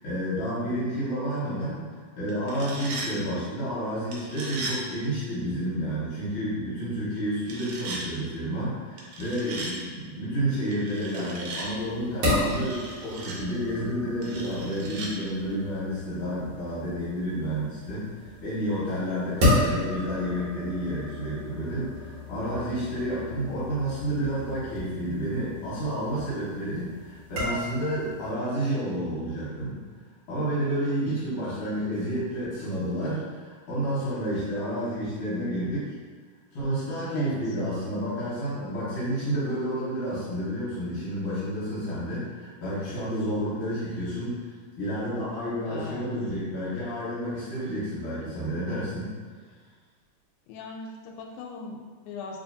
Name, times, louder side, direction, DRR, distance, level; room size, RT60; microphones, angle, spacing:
voice 1, 0.0-29.8 30.3-35.9 36.5-49.1, equal, 60° left, -10 dB, 2.0 m, -30 dB
sound 1, 2.3-3.1 4.1-4.8 7.4-8.0 9.0-9.7 10.7-11.7 12.5-13.4 14.2-15.1, right 3 dB, 85° right, 2.0 m, -37 dB
sound 2, 11.6-28.3, left 1 dB, 60° right, 2.1 m, -33 dB
voice 2, 37.1-37.4 45.6-46.1 50.5-52.4, left 4 dB, 85° left, 0 dB, 2.0 m, -40 dB
4.7 x 2.7 x 2.7 m, 1.5 s
omnidirectional pair, 3.5 m